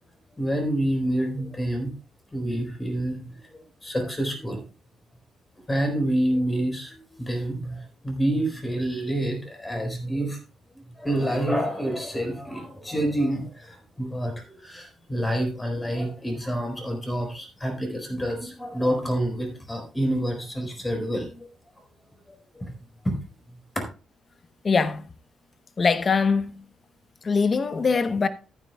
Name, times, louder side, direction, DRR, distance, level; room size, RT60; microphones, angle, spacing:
voice 1, 0.4-1.9 2.3-4.6 5.7-10.4 11.0-21.5 22.5-22.8 23.0-23.1, right 1 dB, 15° left, 4.3 m, -28 dB
voice 2, 24.6-25.0 25.8-26.4 27.3-28.3, left 5 dB, 40° left, 0.9 m, -22 dB
14.0 x 9.8 x 2.3 m
cardioid pair, 90°, 0 cm